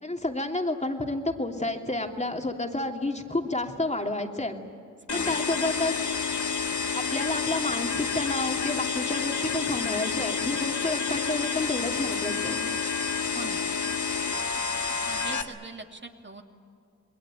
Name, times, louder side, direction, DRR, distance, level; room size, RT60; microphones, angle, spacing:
voice 1, 0.0-4.6 5.1-6.0 6.9-12.6, left 2 dB, 20° left, 3 dB, 2.9 m, -30 dB
sound 1, 5.1-15.4, left 5 dB, 70° left, 1.8 m, -29 dB
voice 2, 13.3-13.6 15.1-16.4, right 3 dB, 35° right, 4 dB, 2.7 m, -41 dB
28.5 x 21.5 x 9.0 m, 2.4 s
cardioid pair, 55°, 31 cm